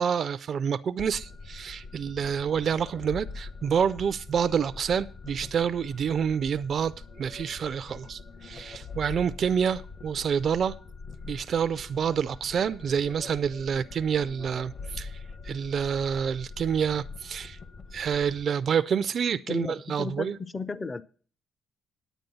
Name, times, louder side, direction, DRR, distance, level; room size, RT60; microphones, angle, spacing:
voice 1, 0.0-10.7 11.3-15.2 15.4-17.6 17.9-20.4, right 7 dB, 55° right, 0.4 m, -28 dB
sound 1, 1.0-18.4, left 4 dB, 55° left, 1.2 m, -43 dB
voice 2, 19.5-21.0, left 4 dB, 25° left, 0.5 m, -34 dB
9.1 x 9.1 x 5.4 m
cardioid pair, 90°, 0 cm